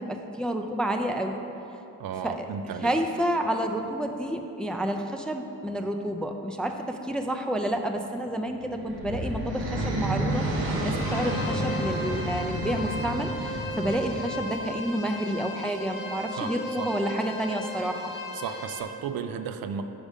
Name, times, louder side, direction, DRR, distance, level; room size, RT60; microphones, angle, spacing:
voice 1, 0.0-1.4 2.2-2.5 2.8-18.1, right 1 dB, ahead, 5 dB, 0.3 m, -29 dB
voice 2, 2.0-2.9 16.4-16.9 18.3-19.8, right 7 dB, 70° right, 8 dB, 0.5 m, -34 dB
sound 1, 8.6-14.6, right 1 dB, 85° right, 1.0 m, -30 dB
sound 2, 10.9-18.8, left 1 dB, 60° left, 0.9 m, -36 dB
5.2 x 5.1 x 5.0 m, 2.9 s
cardioid pair, 70°, 36 cm